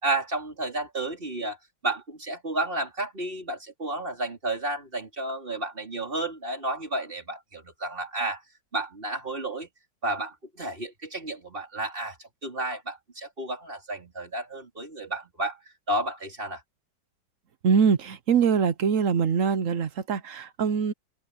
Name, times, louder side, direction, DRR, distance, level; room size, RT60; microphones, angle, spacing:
voice 1, 0.0-1.6 1.8-8.4 8.7-9.7 10.0-12.2 12.4-15.6 15.9-16.6, right 2 dB, 30° right, 4.3 m, -31 dB
voice 2, 17.6-20.9, right 6 dB, 55° right, 1.0 m, -23 dB
omnidirectional pair, 2.0 m